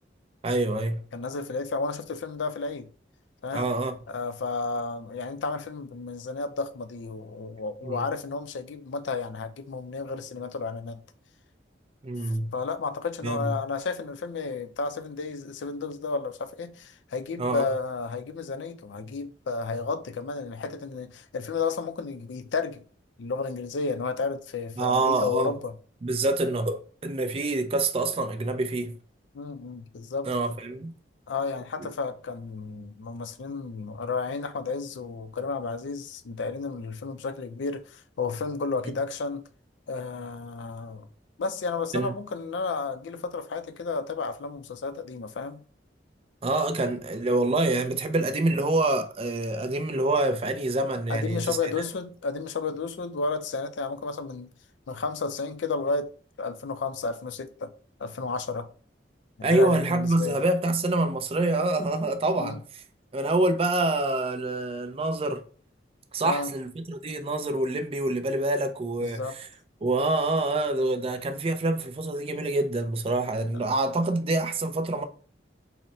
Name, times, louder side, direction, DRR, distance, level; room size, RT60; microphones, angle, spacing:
voice 1, 0.4-1.0 3.5-3.9 7.8-8.1 12.0-12.5 13.2-13.6 17.4-17.6 24.8-25.5 26.0-29.0 30.3-30.9 31.8-31.9 41.9-42.1 46.4-51.6 59.4-62.6 63.1-65.4 66.1-69.2 69.8-75.0, right 2 dB, 30° right, 0.4 m, -26 dB
voice 2, 1.1-2.9 3.4-3.7 4.1-11.0 12.5-22.8 23.2-25.7 29.3-30.3 31.3-39.4 39.9-41.1 41.4-45.6 51.1-54.5 54.9-56.1 56.4-57.7 58.0-58.7 59.4-60.4 62.4-62.6 66.2-66.5 69.0-69.4 73.5-73.7, left 4 dB, 80° left, 0.4 m, -32 dB
3.9 x 2.1 x 4.1 m
head